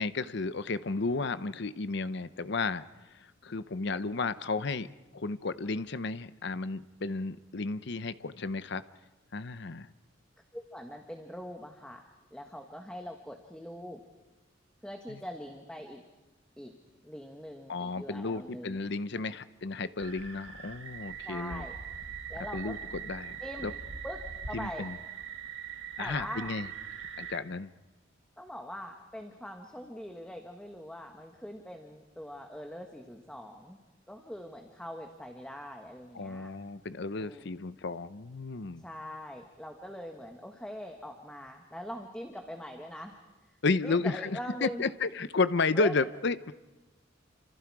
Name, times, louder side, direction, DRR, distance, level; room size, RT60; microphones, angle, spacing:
voice 1, 0.0-2.8 3.1-4.9 5.1-8.8 9.3-9.9 15.1-15.2 17.7-21.6 22.5-22.8 23.0-23.4 23.6-23.7 24.5-25.0 26.0-26.7 27.2-27.7 36.1-38.8 43.6-46.5, left 3 dB, 60° left, 14 dB, 0.8 m, -32 dB
voice 2, 10.5-14.0 14.8-16.0 16.6-18.8 19.1-19.3 21.2-21.7 22.3-22.8 23.4-24.2 24.5-24.9 26.0-26.6 28.4-33.8 34.1-36.5 37.2-37.5 38.8-43.1 43.8-44.8 45.7-45.9, equal, 5° left, 3 dB, 1.4 m, -42 dB
sound 1, 20.0-27.4, right 7 dB, 70° right, 2.2 m, -42 dB
28.5 x 26.5 x 4.8 m, 1.1 s
head